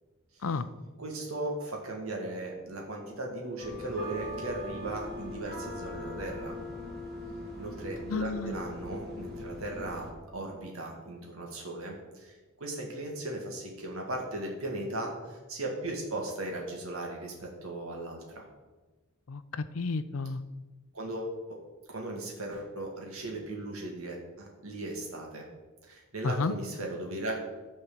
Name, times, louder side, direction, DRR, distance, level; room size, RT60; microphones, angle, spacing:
voice 1, 1.0-6.6 7.6-18.5 20.9-25.5 25.8-27.4, right 2 dB, 75° right, 0 dB, 2.0 m, -37 dB
sound 1, 3.3-10.6, left 3 dB, 5° left, 1.0 m, -44 dB
sound 2, 3.6-10.1, right 1 dB, 45° right, 1.5 m, -43 dB
voice 2, 8.1-8.6 19.3-20.4 26.2-26.5, left 4 dB, 75° left, 13 dB, 0.5 m, -31 dB
10.5 x 4.4 x 7.2 m, 1.2 s
head